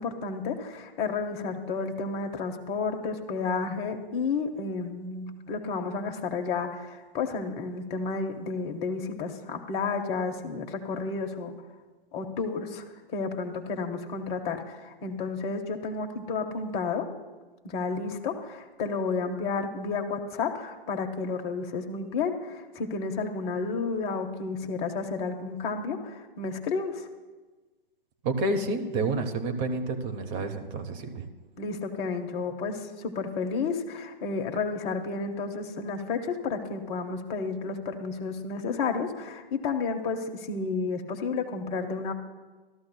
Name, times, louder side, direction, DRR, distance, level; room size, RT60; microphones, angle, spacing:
voice 1, 0.0-11.5 12.1-12.8 13.1-17.1 17.6-27.1 31.6-42.1, left 4 dB, 20° left, 4 dB, 0.8 m, -31 dB
voice 2, 28.2-31.3, right 2 dB, 25° right, 6 dB, 0.7 m, -29 dB
14.5 x 12.5 x 2.2 m, 1.3 s
hypercardioid pair, 130°, 29 cm